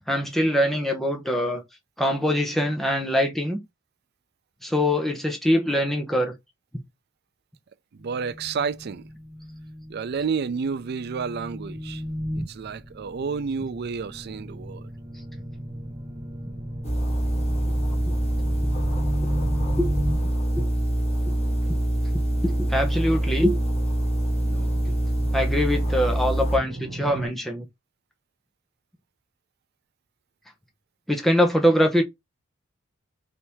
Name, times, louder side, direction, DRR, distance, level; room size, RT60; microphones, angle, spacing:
voice 1, 0.1-1.6 2.0-3.6 4.6-6.3 17.7-17.8 18.1-18.2 18.6-18.7 19.8-19.9 20.5-20.7 21.3-21.4 22.1-23.5 24.9-25.0 25.3-27.7 31.1-32.0, equal, ahead, 0.8 m, -23 dB
voice 2, 7.9-9.0 9.9-12.0 12.4-14.9 24.5-24.7, right 5 dB, 55° right, 0.4 m, -30 dB
sound 1, 8.0-27.3, equal, 25° right, 1.4 m, -35 dB
sound 2, 16.8-26.6, right 1 dB, 30° left, 1.4 m, -25 dB
3.4 x 2.7 x 4.6 m
head